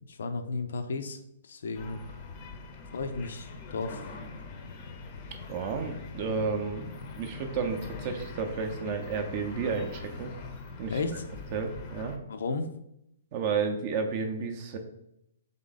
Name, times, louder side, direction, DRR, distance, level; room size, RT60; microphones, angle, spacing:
voice 1, 0.1-2.0 2.9-4.0 10.9-11.3 12.3-12.7, left 3 dB, 75° left, 8 dB, 0.5 m, -34 dB
sound 1, 1.7-12.2, left 4 dB, 30° left, 0.5 m, -43 dB
voice 2, 5.5-6.9 7.1-10.3 10.8-11.0 11.5-12.2 13.3-14.8, right 5 dB, 35° right, 5 dB, 0.5 m, -31 dB
3.7 x 3.5 x 3.9 m, 0.80 s
hypercardioid pair, 165°, 0 cm